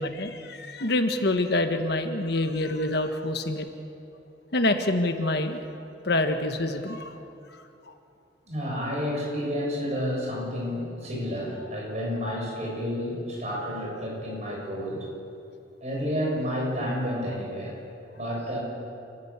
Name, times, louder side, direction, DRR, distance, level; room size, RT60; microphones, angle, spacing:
voice 1, 0.0-3.7 4.5-5.6 6.0-7.2 7.9-8.0, left 2 dB, 65° left, 6 dB, 1.5 m, -26 dB
voice 2, 8.5-15.0 15.8-17.8 18.1-18.6, equal, 40° right, -2 dB, 7.3 m, -30 dB
29.0 x 13.5 x 8.3 m, 2.6 s
head